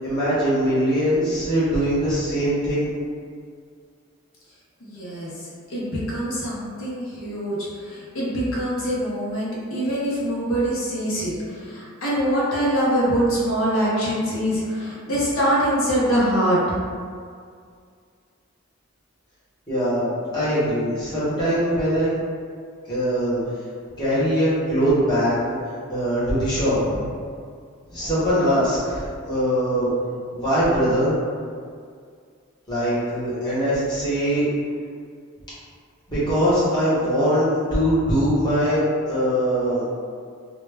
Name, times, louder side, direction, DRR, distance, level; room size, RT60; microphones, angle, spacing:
voice 1, 0.0-2.9 19.7-20.0 20.3-22.1 22.9-23.4 24.0-25.6 25.9-27.1 27.9-29.9 30.3-31.1 32.7-34.5 36.1-39.8, equal, 20° left, -11 dB, 0.8 m, -22 dB
voice 2, 4.8-16.8, equal, 70° left, -7 dB, 0.6 m, -24 dB
2.1 x 2.0 x 3.2 m, 2.1 s
head